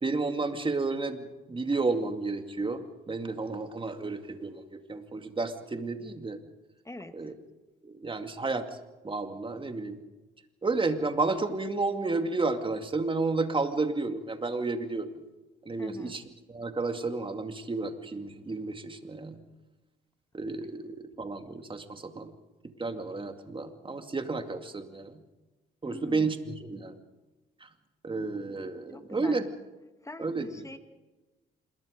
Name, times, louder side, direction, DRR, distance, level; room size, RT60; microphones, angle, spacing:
voice 1, 0.0-6.4 7.1-7.3 7.8-8.8 9.0-10.0 10.6-15.1 15.6-16.2 16.5-19.4 20.3-22.3 22.8-25.2 25.8-27.0 27.6-27.7 28.0-29.5 30.2-30.5, right 3 dB, 25° right, 7 dB, 2.3 m, -31 dB
voice 2, 6.9-7.3 15.8-16.1 25.8-26.3 28.9-29.4 30.0-30.8, left 2 dB, 15° left, 8 dB, 1.9 m, -44 dB
26.5 x 21.5 x 5.2 m, 1.1 s
cardioid pair, 90°, 20 cm